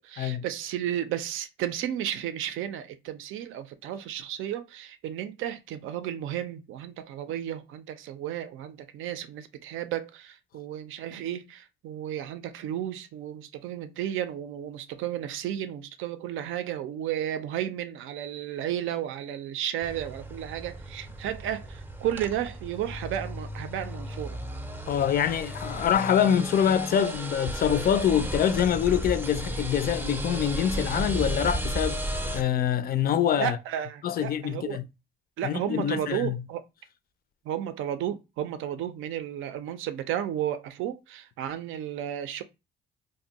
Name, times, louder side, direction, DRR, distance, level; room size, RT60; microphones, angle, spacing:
voice 1, 0.0-24.4 33.4-34.8 35.4-36.6 37.5-42.4, right 11 dB, 85° right, 0.4 m, -33 dB
sound 1, 19.8-32.4, right 1 dB, 10° right, 0.4 m, -34 dB
voice 2, 24.9-33.6 34.0-34.8 35.4-36.4, left 9 dB, 50° left, 0.4 m, -25 dB
2.6 x 2.0 x 3.9 m
cardioid pair, 90°, 20 cm